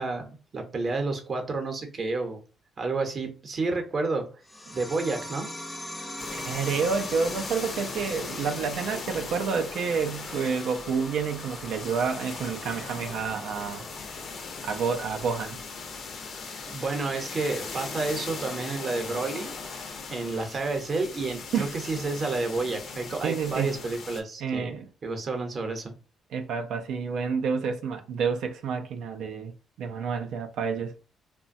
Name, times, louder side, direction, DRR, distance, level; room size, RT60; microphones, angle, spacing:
voice 1, 0.0-2.4 2.8-4.3 4.7-5.5 16.7-19.5 20.1-24.8 25.0-25.9, right 3 dB, 45° right, 0.7 m, -30 dB
sound 1, 4.5-15.5, left 1 dB, 15° left, 0.6 m, -42 dB
sound 2, 6.2-24.2, left 4 dB, 60° left, 0.5 m, -39 dB
voice 2, 6.3-13.8 14.6-15.6 21.5-21.7 23.2-23.7 24.4-24.9 26.3-29.5 29.8-30.9, right 6 dB, 80° right, 0.3 m, -29 dB
3.1 x 2.1 x 2.5 m
cardioid pair, 90°, 0 cm